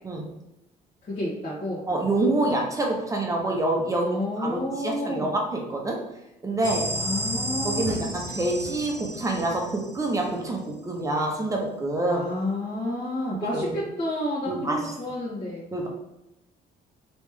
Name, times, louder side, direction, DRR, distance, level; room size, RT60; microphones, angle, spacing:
voice 1, 1.0-1.8 3.9-5.3 6.9-8.0 12.1-15.7, left 1 dB, 40° left, -10 dB, 1.4 m, -30 dB
voice 2, 1.9-4.1 4.4-6.1 6.4-7.0 7.6-12.2 13.3-13.8 14.5-14.9 15.7-15.9, right 2 dB, 20° right, 0 dB, 0.8 m, -27 dB
sound 1, 6.6-10.3, equal, 20° left, 1.1 m, -32 dB
3.1 x 3.0 x 3.6 m, 0.90 s
cardioid pair, 110°, 17 cm